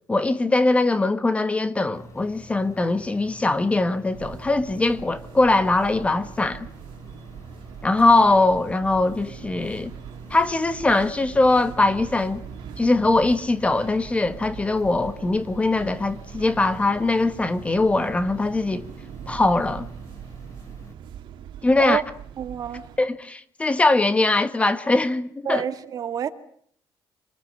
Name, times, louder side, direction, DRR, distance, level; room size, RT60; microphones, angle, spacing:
voice 1, 0.1-6.7 7.8-9.9 10.3-12.4 12.8-18.9 19.3-19.9 21.6-22.0 23.0-25.6, left 2 dB, 15° left, 1.3 m, -21 dB
sound 1, 1.9-20.9, equal, 35° left, 4.9 m, -46 dB
sound 2, 4.1-23.0, right 9 dB, 75° right, 2.2 m, -42 dB
voice 2, 22.4-22.9 25.5-26.3, right 9 dB, 45° right, 1.9 m, -28 dB
26.5 x 20.5 x 9.7 m
cardioid pair, 150°, 8 cm